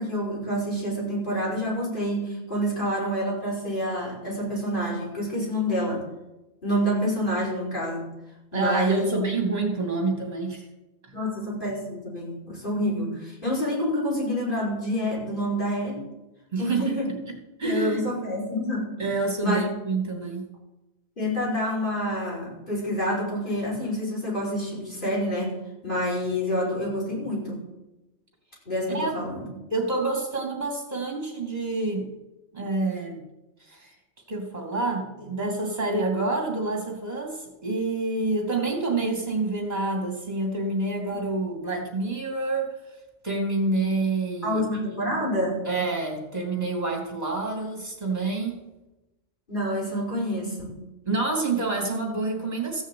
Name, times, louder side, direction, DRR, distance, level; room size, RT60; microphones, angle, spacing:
voice 1, 0.0-6.0 6.6-8.1 8.5-9.2 11.1-16.0 16.6-17.1 17.6-19.1 19.4-19.6 21.2-25.6 25.8-27.6 28.7-29.5 44.4-45.6 49.5-50.8, equal, 40° left, -4 dB, 5.6 m, -28 dB
voice 2, 8.5-10.7 11.0-11.1 16.5-17.0 17.3-18.0 19.0-20.4 28.9-29.1 29.7-32.1 32.5-33.2 33.6-33.9 34.3-42.7 43.2-44.6 45.0-45.1 45.6-48.7 51.0-52.8, right 3 dB, 30° right, 2 dB, 2.9 m, -27 dB
15.0 x 6.3 x 8.5 m, 1.0 s
omnidirectional pair, 1.3 m